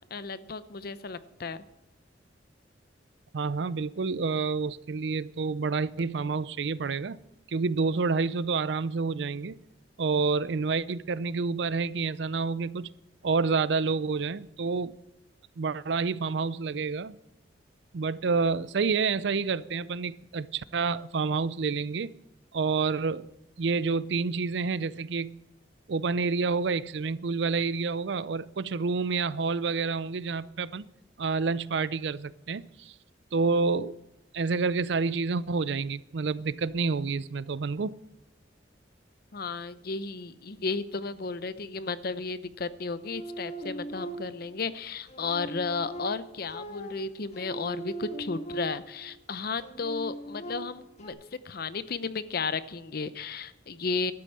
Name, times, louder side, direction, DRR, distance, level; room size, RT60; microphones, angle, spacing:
voice 1, 0.1-1.6 39.3-51.2 51.4-54.1, left 4 dB, 55° left, 0.7 m, -34 dB
voice 2, 3.3-7.2 7.5-9.6 10.0-12.9 13.2-15.0 15.6-17.2 17.9-22.1 22.5-23.3 23.6-25.4 25.9-30.8 31.2-32.9 33.3-34.0 34.3-37.9, right 4 dB, 65° right, 0.5 m, -28 dB
sound 1, 43.0-44.6 45.1-49.1 49.6-51.1, right 2 dB, 35° left, 1.7 m, -40 dB
12.5 x 8.9 x 7.5 m
head